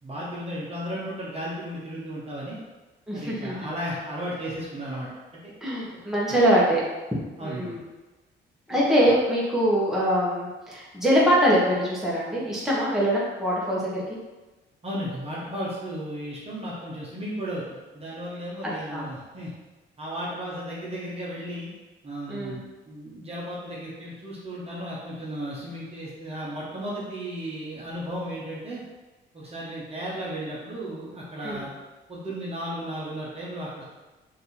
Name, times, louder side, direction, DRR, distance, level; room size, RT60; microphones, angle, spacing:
voice 1, 0.0-2.6 3.1-5.1 5.4-5.5 7.4-7.8 8.7-8.8 14.8-19.5 20.0-21.7 22.0-28.8 29.3-31.7 32.1-33.8, equal, 30° right, -7 dB, 1.1 m, -34 dB
voice 2, 3.1-3.7 5.6-6.8 7.4-7.8 8.7-14.0 18.6-19.1 22.3-22.6 31.4-31.6, equal, ahead, -7 dB, 1.3 m, -23 dB
3.3 x 2.8 x 4.3 m, 1.2 s
cardioid pair, 90°, 20 cm